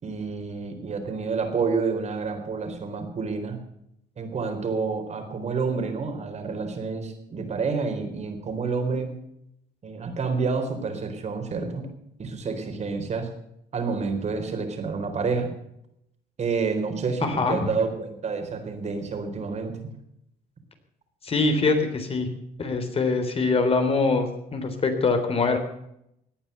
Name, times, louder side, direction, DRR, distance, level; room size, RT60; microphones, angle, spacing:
voice 1, 0.0-3.6 4.2-9.1 9.8-11.9 12.2-13.3 13.7-15.5 16.4-19.9, right 4 dB, 40° right, 6 dB, 4.0 m, -29 dB
voice 2, 17.2-17.6 21.2-22.3 22.6-25.6, left 3 dB, 35° left, 6 dB, 3.6 m, -23 dB
17.5 x 9.8 x 6.8 m, 0.77 s
cardioid pair, 110°, 17 cm